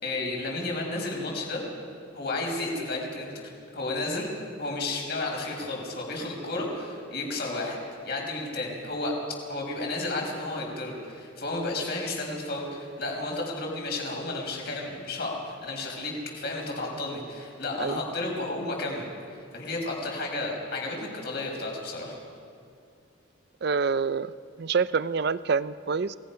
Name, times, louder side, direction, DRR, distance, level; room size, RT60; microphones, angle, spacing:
voice 1, 0.0-1.6 2.1-7.8 8.0-9.1 9.5-22.2, left 2 dB, 50° left, -1 dB, 5.3 m, -32 dB
voice 2, 23.6-24.3 24.6-26.2, right 5 dB, 50° right, 16 dB, 0.5 m, -26 dB
27.5 x 18.5 x 5.7 m, 2.4 s
head